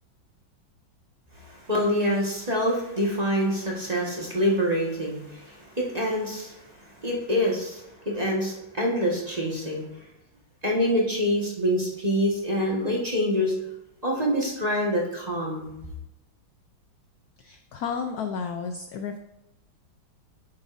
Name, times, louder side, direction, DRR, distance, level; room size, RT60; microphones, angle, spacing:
voice 1, 1.4-6.6 6.8-9.8 10.6-13.5 14.0-15.7, equal, 20° right, -3 dB, 1.4 m, -26 dB
voice 2, 17.4-19.2, left 6 dB, 75° left, 6 dB, 0.9 m, -32 dB
10.0 x 7.3 x 2.6 m, 0.89 s
omnidirectional pair, 2.2 m